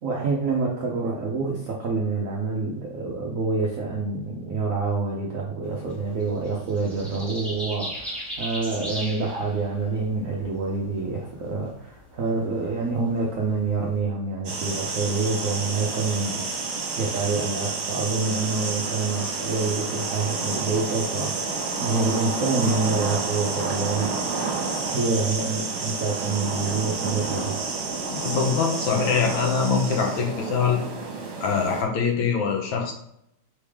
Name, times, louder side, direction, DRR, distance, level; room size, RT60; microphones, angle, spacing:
voice 1, 0.0-24.1 24.8-27.7, right 3 dB, 90° right, -2 dB, 0.7 m, -27 dB
sound 1, 5.7-14.0, equal, ahead, 0.9 m, -38 dB
sound 2, 14.4-31.8, right 4 dB, 65° right, 1.6 m, -29 dB
voice 2, 28.1-30.8 31.4-32.9, left 6 dB, 70° left, 1 dB, 1.6 m, -23 dB
4.3 x 3.2 x 3.5 m, 0.73 s
omnidirectional pair, 2.3 m